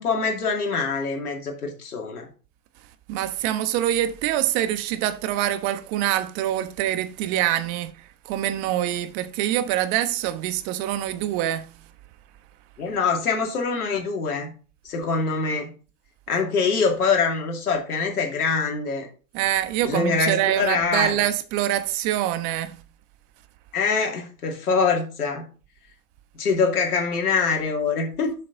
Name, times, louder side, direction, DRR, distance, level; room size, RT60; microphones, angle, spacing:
voice 1, 0.0-2.3 12.8-14.5 14.8-15.7 16.3-19.1 19.8-21.2 23.7-25.5 26.3-28.3, left 4 dB, 85° left, 2.6 m, -24 dB
voice 2, 3.1-7.9 8.2-11.7 19.3-22.8, right 12 dB, 45° right, 1.2 m, -25 dB
7.1 x 6.5 x 4.0 m
hypercardioid pair, 110°, 44 cm